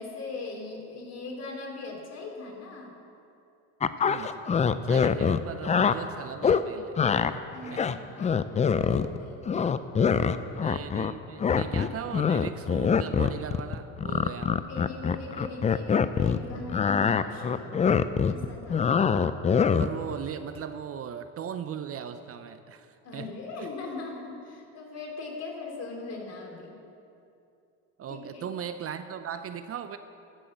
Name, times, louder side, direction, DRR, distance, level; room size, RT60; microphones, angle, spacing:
voice 1, 0.0-2.9 7.5-9.4 10.0-10.4 14.7-17.8 18.3-18.9 23.0-26.8 28.1-28.4, left 3 dB, 45° left, 0 dB, 2.9 m, -40 dB
sound 1, 3.8-5.9 6.4-6.6 7.0-7.3 7.7-9.2 9.5-11.1 11.4-16.4 16.7-20.0, left 6 dB, 20° left, 0.4 m, -24 dB
voice 2, 4.0-7.4 7.7-7.8 10.6-14.7 19.8-23.3 23.6-23.7 28.0-30.0, right 8 dB, 40° right, 10 dB, 0.6 m, -38 dB
13.5 x 6.3 x 7.5 m, 2.6 s
supercardioid pair, 90°, 35 cm